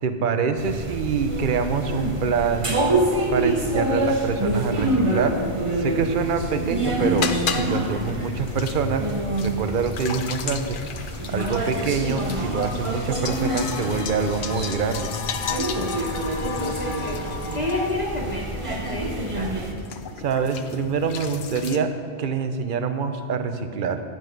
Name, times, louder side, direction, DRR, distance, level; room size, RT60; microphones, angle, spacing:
voice 1, 0.0-2.8 3.3-5.4 5.8-9.1 9.4-10.8 11.3-15.1 20.2-21.9 22.2-24.0, right 5 dB, 55° right, 8 dB, 0.9 m, -25 dB
sound 1, 0.6-19.7, right 1 dB, 30° right, 1.0 m, -27 dB
sound 2, 6.3-21.8, left 7 dB, 55° left, 0.7 m, -35 dB
sound 3, 12.4-20.9, equal, 85° right, 3.4 m, -45 dB
voice 2, 16.4-19.5, left 2 dB, 40° left, -4 dB, 1.6 m, -30 dB
10.5 x 8.7 x 5.2 m, 2.3 s
omnidirectional pair, 1.1 m